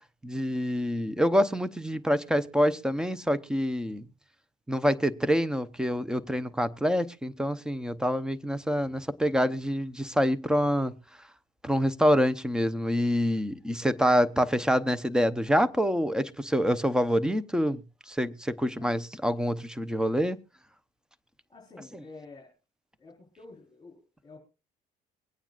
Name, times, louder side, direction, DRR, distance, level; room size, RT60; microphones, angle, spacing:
voice 1, 0.2-4.0 4.7-10.9 11.6-17.8 18.1-20.4, equal, 5° right, 0.7 m, -26 dB
voice 2, 21.5-22.5 23.0-24.4, left 3 dB, 25° left, 4.1 m, -49 dB
23.5 x 8.9 x 2.4 m
cardioid pair, 110°, 17 cm